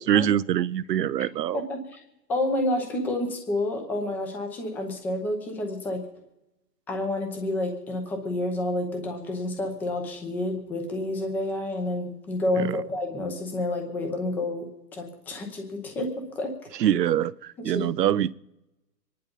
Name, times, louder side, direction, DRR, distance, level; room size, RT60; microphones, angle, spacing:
voice 1, 0.1-1.6 12.6-12.7 16.8-18.4, right 10 dB, 75° right, 19 dB, 0.8 m, -24 dB
voice 2, 1.5-2.0 2.3-6.0 6.9-16.1 16.3-16.5 17.6-17.9, left 1 dB, 5° left, 4 dB, 0.7 m, -29 dB
24.0 x 10.5 x 5.4 m, 0.94 s
hypercardioid pair, 160°, 48 cm